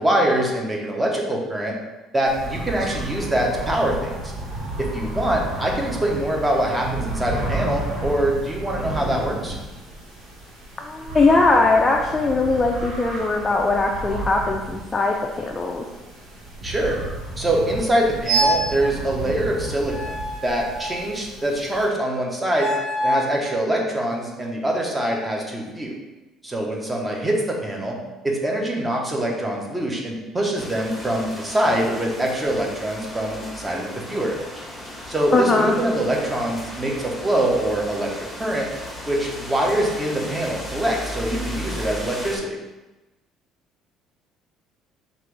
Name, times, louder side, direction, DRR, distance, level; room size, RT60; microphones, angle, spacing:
voice 1, 0.0-1.7 2.1-4.3 4.8-9.5 16.6-17.0 17.4-22.7 23.0-25.9 26.4-27.9 28.2-34.3 35.1-38.7 39.1-42.6, right 1 dB, 15° right, -1 dB, 0.9 m, -24 dB
sound 1, 2.2-21.9, right 1 dB, 70° right, 1.5 m, -33 dB
voice 2, 10.8-15.8 35.3-35.7, left 3 dB, 20° left, 1 dB, 0.4 m, -20 dB
sound 2, 18.3-18.8 19.9-21.2 22.5-23.4, right 2 dB, 45° right, 0.9 m, -24 dB
sound 3, 30.5-42.4, left 1 dB, ahead, 1.1 m, -36 dB
5.4 x 2.5 x 3.3 m, 1.1 s
cardioid pair, 120°, 0 cm